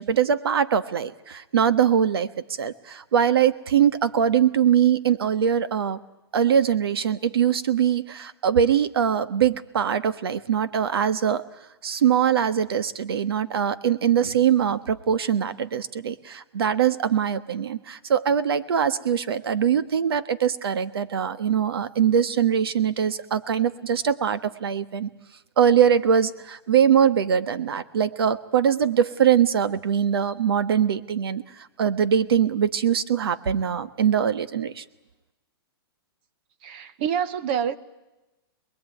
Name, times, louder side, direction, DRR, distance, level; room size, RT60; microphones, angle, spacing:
voice 1, 0.0-2.3 2.6-6.0 6.3-11.4 11.8-25.1 25.6-31.4 31.8-34.8, right 8 dB, 70° right, 13 dB, 1.4 m, -22 dB
voice 2, 36.6-37.8, right 8 dB, 25° right, 14 dB, 0.9 m, -27 dB
26.5 x 21.0 x 9.3 m, 1.0 s
hypercardioid pair, 180°, 13 cm